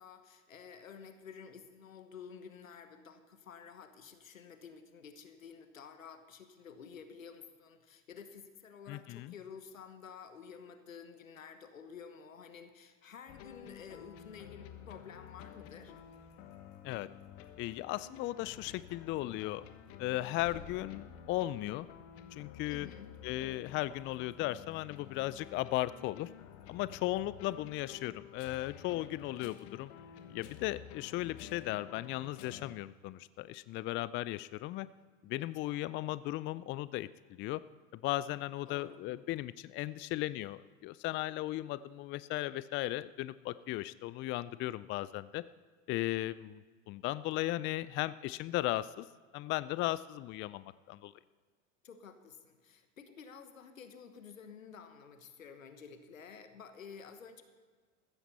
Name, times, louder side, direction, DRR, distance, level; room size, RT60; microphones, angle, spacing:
voice 1, 0.0-15.9 22.7-23.3 35.4-35.5 38.7-39.0 51.8-57.4, left 6 dB, 85° left, 8 dB, 1.4 m, -51 dB
voice 2, 8.9-9.3 16.8-17.1 17.6-19.6 20.0-21.9 22.3-22.9 23.2-26.3 26.7-29.9 30.3-34.9 35.2-37.6 37.9-45.4 45.9-49.0 49.3-51.1, left 16 dB, 30° left, 17 dB, 0.4 m, -36 dB
sound 1, 13.3-32.8, left 9 dB, 55° left, 1.4 m, -51 dB
15.0 x 14.0 x 4.2 m, 1.5 s
hypercardioid pair, 85°, 39 cm